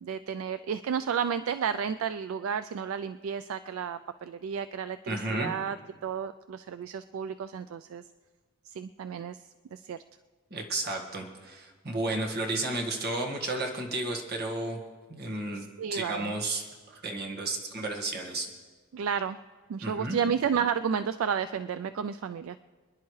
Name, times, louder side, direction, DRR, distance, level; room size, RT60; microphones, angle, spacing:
voice 1, 0.0-5.8 6.0-8.0 8.6-9.4 9.7-10.0 15.5-16.3 18.9-19.4 19.7-22.6, right 7 dB, 70° right, 12 dB, 0.3 m, -32 dB
voice 2, 5.1-5.5 10.5-14.8 15.1-16.6 16.9-18.5 19.8-20.2, right 2 dB, 50° right, 1 dB, 1.7 m, -32 dB
26.5 x 10.5 x 3.2 m, 1.5 s
head